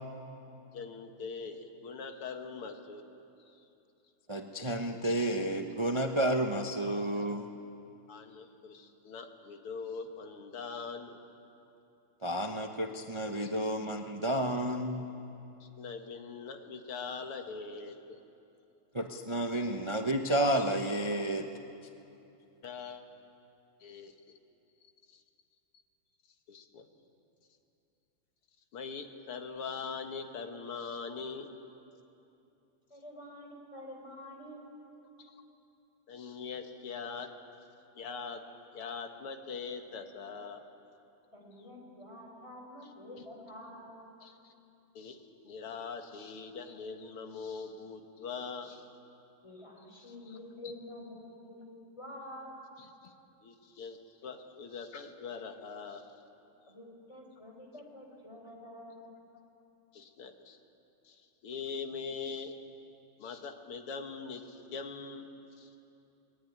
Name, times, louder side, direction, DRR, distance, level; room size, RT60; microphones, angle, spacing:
voice 1, 0.7-3.0 5.0-5.1 8.1-11.2 13.4-13.5 15.6-18.2 22.6-23.0 23.8-24.1 25.1-25.2 26.5-26.9 28.7-31.5 35.2-35.4 36.1-37.3 38.0-38.4 38.7-40.6 42.8-42.9 44.2-44.5 44.9-48.8 50.1-50.4 52.8-53.1 53.4-56.1 59.9-60.6 61.0-61.2 61.4-62.5 63.2-65.3 65.6-65.7, left 5 dB, 90° left, 5 dB, 2.5 m, -42 dB
voice 2, 4.3-7.5 12.2-15.0 18.9-21.5, right 1 dB, 45° right, 4 dB, 0.3 m, -31 dB
voice 3, 32.9-34.8 41.3-44.0 49.4-52.6 56.7-59.1, left 1 dB, 15° left, 0 dB, 4.5 m, -48 dB
23.5 x 19.5 x 9.5 m, 2.8 s
omnidirectional pair, 2.3 m